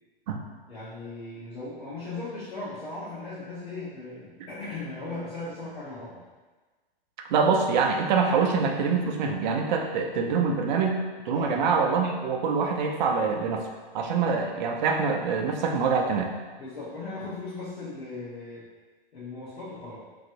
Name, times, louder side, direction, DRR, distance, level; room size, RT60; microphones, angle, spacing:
voice 1, 0.7-6.2 11.4-11.6 16.6-18.6 19.1-20.0, left 3 dB, 85° left, -12 dB, 1.2 m, -37 dB
voice 2, 7.3-11.0 11.3-13.7 13.9-16.3, right 5 dB, 50° right, 3 dB, 0.5 m, -25 dB
3.1 x 2.7 x 2.5 m, 1.3 s
hypercardioid pair, 130°, 31 cm